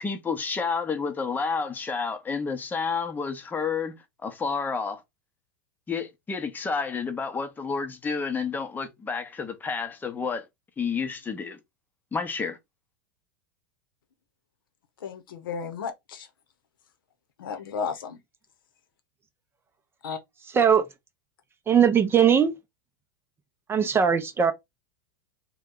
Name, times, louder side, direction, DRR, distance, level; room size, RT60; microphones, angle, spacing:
voice 1, 0.0-3.9 4.2-5.0 5.9-10.4 10.8-11.6 12.1-12.6, left 5 dB, 15° left, 0.7 m, -30 dB
voice 2, 15.0-16.3 17.4-18.2 20.0-20.2, left 6 dB, 80° left, 0.8 m, -33 dB
voice 3, 20.5-20.9 21.7-22.5 23.7-24.5, right 7 dB, 20° right, 0.5 m, -20 dB
2.8 x 2.2 x 3.5 m
hypercardioid pair, 105°, 11 cm